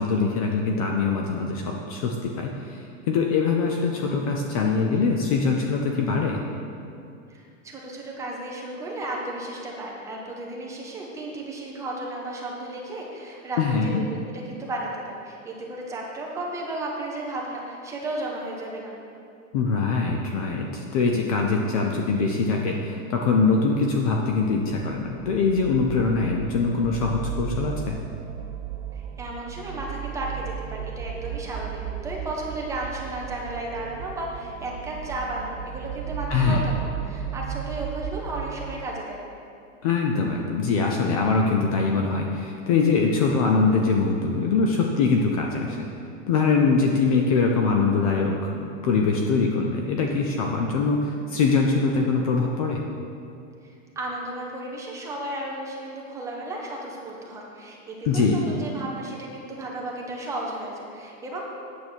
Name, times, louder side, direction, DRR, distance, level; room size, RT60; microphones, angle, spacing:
voice 1, 0.0-6.4 13.6-14.0 19.5-28.0 36.3-36.7 39.8-45.9 46.3-52.8 58.0-58.6, left 4 dB, 30° left, 2 dB, 0.5 m, -23 dB
voice 2, 7.3-14.0 14.3-18.9 28.9-39.2 53.6-61.4, right 1 dB, 10° right, -2 dB, 0.7 m, -34 dB
sound 1, 24.5-38.9, right 9 dB, 50° right, 0.5 m, -35 dB
9.0 x 7.1 x 6.2 m, 2.5 s
supercardioid pair, 170°, 39 cm